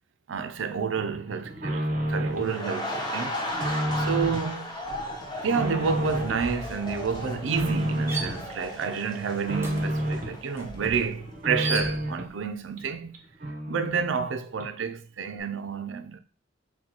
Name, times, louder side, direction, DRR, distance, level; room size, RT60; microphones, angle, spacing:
voice 1, 0.3-4.7 5.4-13.1 13.7-16.2, right 6 dB, 70° right, 0.5 m, -30 dB
sound 1, 0.9-2.6 2.9-4.5 4.9-6.5 6.8-8.4 8.8-10.4 10.8-12.3 12.8-12.9 13.1-13.2 13.4-14.3 14.6-14.7, equal, 40° right, 0.9 m, -31 dB
sound 2, 2.4-11.2 11.5-11.8, left 1 dB, 20° left, 0.7 m, -36 dB
sound 3, 3.4-3.7 4.0-12.4, right 2 dB, 10° right, 0.6 m, -40 dB
6.4 x 2.2 x 2.9 m
head